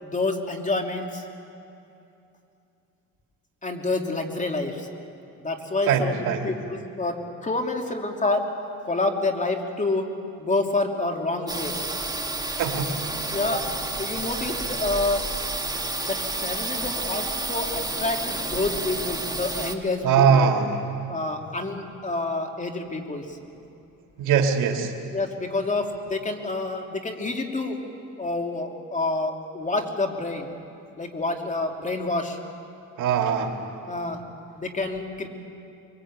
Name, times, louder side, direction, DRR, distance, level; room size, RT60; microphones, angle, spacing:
voice 1, 0.0-1.2 3.6-4.9 5.4-8.4 8.8-10.1 10.4-11.7 13.3-13.6 14.0-15.2 16.1-20.5 21.1-23.4 25.1-27.8 28.2-30.5 31.0-32.4 33.9-34.2 34.6-35.3, left 2 dB, 25° left, 3 dB, 3.0 m, -28 dB
voice 2, 5.9-6.5 12.6-12.9 20.0-20.8 24.2-24.9 33.0-33.6, right 6 dB, 85° right, 4 dB, 2.4 m, -21 dB
sound 1, 11.5-19.7, right 2 dB, 15° right, 1.9 m, -30 dB
24.0 x 23.5 x 8.8 m, 2.7 s
cardioid pair, 90°, 30 cm